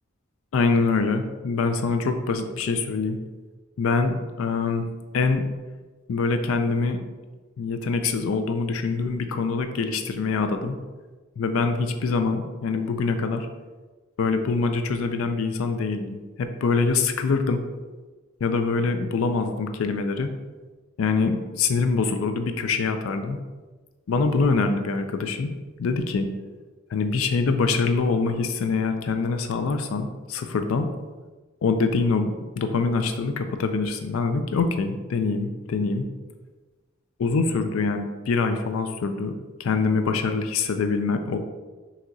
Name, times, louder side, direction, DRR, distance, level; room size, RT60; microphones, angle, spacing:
voice 1, 0.5-3.2 3.8-4.9 5.1-5.4 6.1-7.0 7.6-10.8 11.4-13.5 14.2-17.6 18.4-20.3 21.0-23.4 24.1-25.5 25.8-26.3 26.9-30.9 31.6-36.0 37.2-41.4, left 4 dB, 75° left, 7 dB, 0.4 m, -24 dB
5.8 x 2.9 x 2.6 m, 1.3 s
head